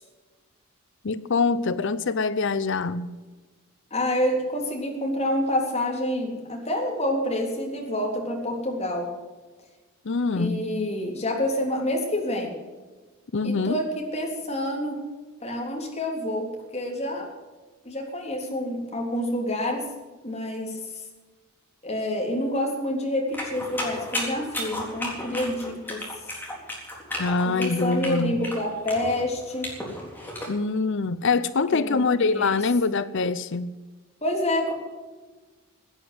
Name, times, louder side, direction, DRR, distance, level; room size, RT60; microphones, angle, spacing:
voice 1, 1.0-3.1 10.0-10.6 13.3-13.8 27.2-28.4 30.5-33.7, left 4 dB, 55° left, 0.6 m, -24 dB
voice 2, 3.9-9.1 10.3-12.6 13.4-15.0 15.4-17.3 17.8-19.9 20.2-21.0 21.8-26.0 27.4-29.7 31.7-32.0 32.3-32.6 34.2-34.7, left 1 dB, 30° left, 3.6 m, -28 dB
sound 1, 23.3-30.5, left 1 dB, 10° left, 3.8 m, -33 dB
16.0 x 9.8 x 7.9 m
head